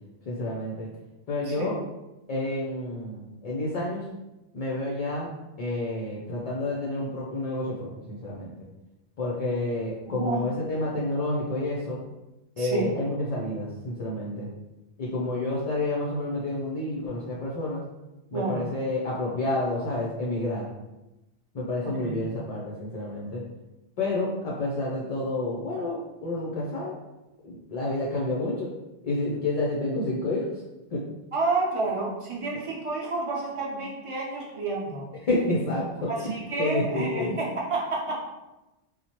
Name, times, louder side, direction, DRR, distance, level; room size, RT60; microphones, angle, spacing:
voice 1, 0.3-0.9 1.3-1.8 2.3-4.1 4.5-5.3 5.6-8.7 9.2-12.0 12.6-14.5 15.0-17.8 18.3-20.7 21.5-23.4 24.0-27.0 27.4-28.7 29.0-30.6 30.9-31.0 35.2-37.4, left 2 dB, 50° left, -4 dB, 0.5 m, -29 dB
voice 2, 10.1-10.4 12.6-12.9 18.3-18.6 22.0-22.2 31.3-35.1 36.1-38.1, right 3 dB, 35° right, -3 dB, 0.7 m, -29 dB
4.2 x 2.1 x 2.9 m, 1.0 s
omnidirectional pair, 1.1 m